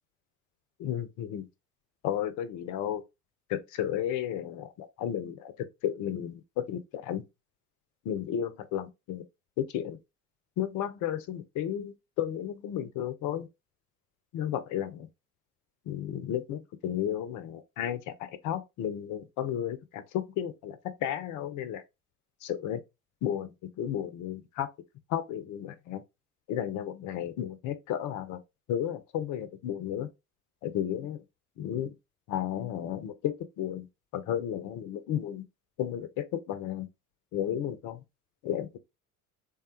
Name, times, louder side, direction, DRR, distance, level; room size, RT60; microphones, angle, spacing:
voice 1, 0.8-1.5 2.0-3.0 3.5-5.5 5.8-7.2 8.0-9.2 9.6-10.0 10.6-13.5 14.3-15.1 15.9-21.8 22.4-22.8 23.2-24.7 25.1-26.0 26.5-28.4 28.7-30.1 30.6-31.2 31.6-31.9 32.3-33.9 34.1-35.4 35.8-36.9 37.3-38.0 38.4-38.8, left 10 dB, 40° left, 0.6 m, -33 dB
3.4 x 2.2 x 2.9 m
figure-of-eight pair, 60°, 45 cm